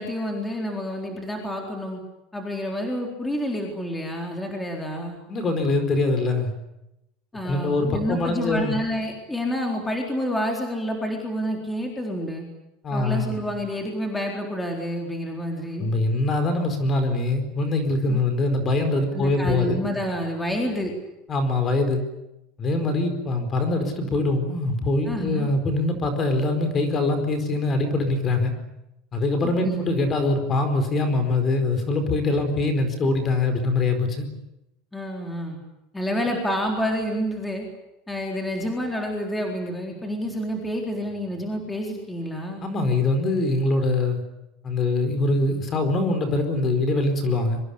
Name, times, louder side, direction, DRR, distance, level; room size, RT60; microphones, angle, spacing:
voice 1, 0.0-2.0 2.3-5.2 7.3-12.4 12.9-15.9 18.1-18.2 19.1-20.9 25.1-25.5 29.3-29.9 34.9-35.6 35.9-37.7 38.1-42.7, equal, 5° left, 1 dB, 4.0 m, -28 dB
voice 2, 5.3-6.5 7.4-8.8 12.8-13.4 15.8-19.8 21.3-22.0 22.6-28.5 29.1-34.2 42.6-44.2 44.6-47.6, left 2 dB, 25° left, 8 dB, 4.5 m, -23 dB
25.0 x 24.5 x 8.5 m, 0.87 s
cardioid pair, 175°, 0 cm